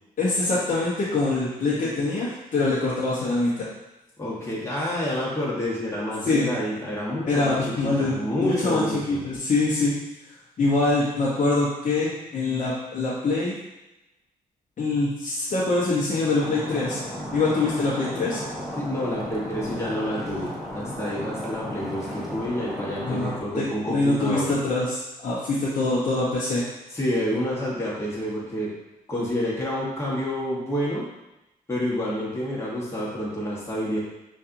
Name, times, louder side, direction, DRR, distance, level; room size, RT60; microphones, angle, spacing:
voice 1, 0.2-3.7 6.3-6.5 7.2-9.9 10.6-13.6 14.8-17.0 17.3-18.4 23.1-26.7, left 3 dB, 55° left, -7 dB, 0.9 m, -24 dB
voice 2, 4.2-9.2 18.8-24.5 26.9-28.7 29.1-31.0 31.7-34.0, equal, 15° left, -6 dB, 1.2 m, -28 dB
Stream, 16.4-23.4, equal, ahead, 0.7 m, -34 dB
5.5 x 2.6 x 2.6 m, 0.96 s
cardioid pair, 100°, 16 cm